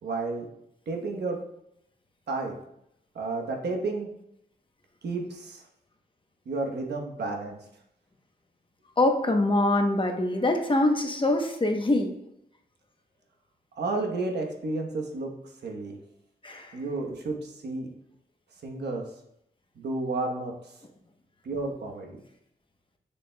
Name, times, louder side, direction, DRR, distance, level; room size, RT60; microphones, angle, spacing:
voice 1, 0.0-0.5 0.9-1.4 2.3-2.5 3.1-4.1 5.0-5.6 6.5-7.6 13.8-15.3 15.6-16.0 16.7-17.9 18.6-19.0 19.8-20.5 21.4-22.1, right 3 dB, 85° right, 2 dB, 1.1 m, -31 dB
voice 2, 9.0-12.1 16.4-16.8, left 2 dB, 30° left, 3 dB, 0.9 m, -24 dB
7.0 x 6.8 x 2.3 m, 0.77 s
wide cardioid pair, 90°, 17 cm